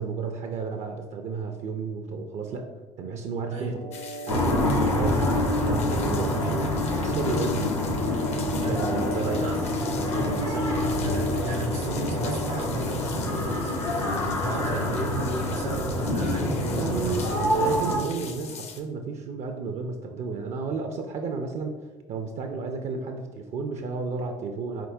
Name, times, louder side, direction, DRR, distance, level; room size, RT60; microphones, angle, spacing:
voice 1, 0.0-2.7 3.0-3.9 4.3-5.3 5.6-6.7 6.9-7.8 8.5-9.5 16.6-17.2 17.5-21.8 22.1-24.9, right 4 dB, 45° right, 5 dB, 0.4 m, -32 dB
sound 1, 3.6-12.5, equal, 70° left, 0.9 m, -39 dB
sound 2, 3.9-18.8, left 6 dB, 45° left, 0.5 m, -43 dB
sound 3, 4.3-18.0, left 1 dB, 90° left, 0.6 m, -26 dB
voice 2, 6.2-6.5 8.6-8.8 9.2-17.4, right 1 dB, 70° right, 1 dB, 0.9 m, -34 dB
4.0 x 3.5 x 2.6 m, 1.3 s
figure-of-eight pair, 55°, 16 cm